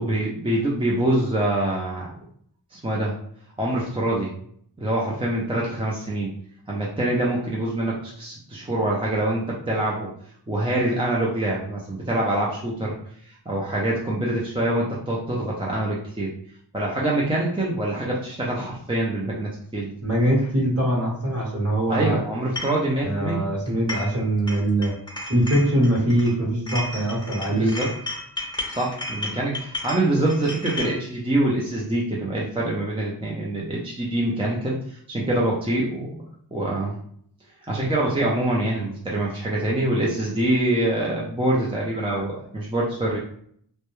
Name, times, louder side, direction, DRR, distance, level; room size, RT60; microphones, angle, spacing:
voice 1, 0.0-2.1 2.7-3.1 3.6-4.3 4.8-6.3 6.7-10.1 10.5-12.9 13.5-16.3 16.7-19.9 21.9-23.5 27.5-27.9 28.7-36.1 36.5-37.0 37.7-43.2, right 1 dB, 15° right, -4 dB, 0.5 m, -25 dB
voice 2, 20.0-22.2 23.0-24.9 25.3-27.7, right 1 dB, 35° right, -3 dB, 1.0 m, -22 dB
sound 1, 22.6-22.8 23.7-24.2 24.5-26.3 26.7-31.0, left 1 dB, 10° left, 0.8 m, -33 dB
2.2 x 2.1 x 3.0 m, 0.63 s
wide cardioid pair, 55°, 42 cm